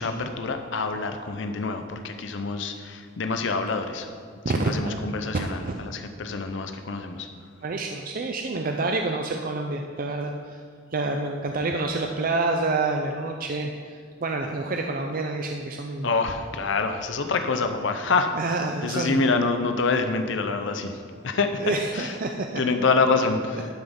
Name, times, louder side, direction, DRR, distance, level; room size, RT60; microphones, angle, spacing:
voice 1, 0.0-4.1 4.5-7.3 16.0-18.3 18.8-21.0 21.2-22.2 22.6-23.7, left 4 dB, 70° left, 7 dB, 0.7 m, -26 dB
voice 2, 4.4-5.0 5.3-5.8 7.6-10.6 10.9-16.1 18.3-19.2 21.6-22.6, right 3 dB, 45° right, 3 dB, 0.6 m, -28 dB
11.5 x 6.1 x 5.2 m, 2.2 s
head